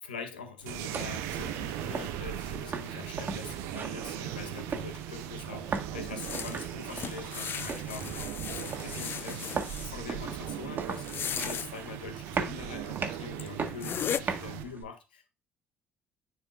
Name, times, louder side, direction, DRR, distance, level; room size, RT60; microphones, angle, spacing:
voice 1, 0.0-15.3, left 5 dB, 85° left, 1.0 m, -44 dB
sound 1, 0.6-14.8, right 5 dB, 40° right, 1.4 m, -39 dB
sound 2, 0.7-14.6, right 11 dB, 70° right, 0.8 m, -39 dB
sound 3, 6.2-9.9 10.9-11.7 12.9-13.0 13.4-13.5 13.8-14.2, left 8 dB, 50° left, 0.4 m, -36 dB
10.0 x 4.4 x 2.4 m
hypercardioid pair, 50°, 5 cm